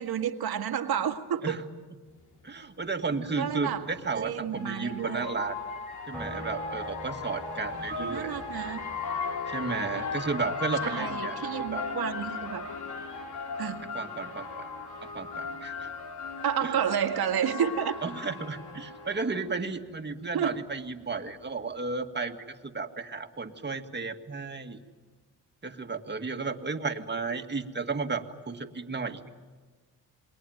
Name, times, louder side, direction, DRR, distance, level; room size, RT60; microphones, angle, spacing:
voice 1, 0.0-1.6 3.4-3.9 4.2-5.4 8.0-8.8 10.8-12.6 13.6-14.0 16.4-18.0 20.3-20.6, right 8 dB, 80° right, 6 dB, 1.9 m, -30 dB
sound 1, 2.3-2.4 3.9-19.5, left 4 dB, 80° left, 3.9 m, -37 dB
voice 2, 2.4-5.6 6.1-8.4 9.5-11.9 13.9-14.7 15.0-15.9 16.6-16.7 18.0-24.8 25.6-29.3, right 4 dB, 30° right, 5 dB, 1.9 m, -33 dB
sound 2, 6.1-19.7 20.0-22.2, equal, 5° left, 4.1 m, -49 dB
28.0 x 21.5 x 9.3 m, 1.4 s
cardioid pair, 85°, 37 cm